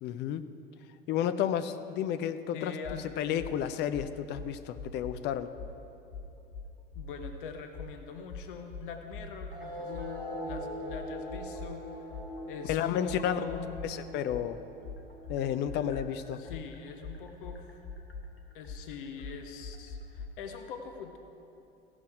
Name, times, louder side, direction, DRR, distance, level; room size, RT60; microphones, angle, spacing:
voice 1, 0.0-0.5 1.1-2.8 3.2-5.5 12.7-13.4 13.8-14.6 15.3-16.4, left 9 dB, 35° left, 11 dB, 0.5 m, -31 dB
voice 2, 2.5-3.1 6.9-12.1 12.5-13.8 16.4-17.8 18.5-21.2, left 6 dB, 60° left, 6 dB, 0.9 m, -43 dB
sound 1, 2.8-3.0 3.4-3.6 3.9-5.2 5.6-5.7 6.1-7.4 7.7-7.9 8.3-9.6 9.9-13.9 14.3-20.3, left 4 dB, 90° left, 0.9 m, -43 dB
sound 2, 9.5-16.5, equal, 85° right, 2.0 m, -42 dB
16.0 x 6.2 x 4.9 m, 2.8 s
figure-of-eight pair, 75°, 29 cm